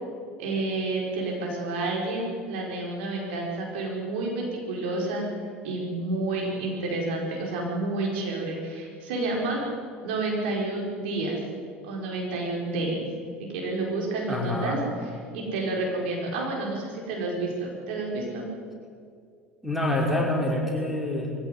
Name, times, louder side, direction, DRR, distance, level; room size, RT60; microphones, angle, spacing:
voice 1, 0.4-5.2 5.6-9.6 10.0-11.3 11.8-13.0 13.5-14.8 15.3-18.5, right 2 dB, 60° right, -1 dB, 4.9 m, -29 dB
voice 2, 14.3-14.8 19.6-21.3, left 1 dB, 5° right, 0 dB, 5.6 m, -26 dB
22.0 x 16.0 x 9.4 m, 2.2 s
figure-of-eight pair, 65°, 6 cm